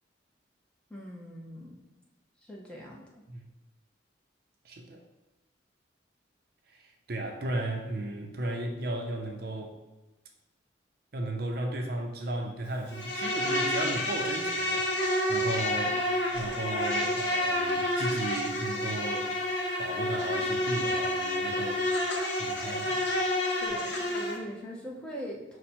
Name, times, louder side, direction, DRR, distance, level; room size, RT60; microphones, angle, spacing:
voice 1, 0.9-1.8 2.5-3.0 23.6-25.6, equal, 5° left, -3 dB, 0.6 m, -41 dB
voice 2, 4.6-5.0 6.7-9.8 11.1-16.0 16.3-19.3 19.8-21.9 22.4-23.0, right 1 dB, 50° right, 3 dB, 0.5 m, -35 dB
Insect, 12.9-24.4, left 1 dB, 65° left, 0.7 m, -29 dB
5.3 x 2.1 x 4.3 m, 1.1 s
head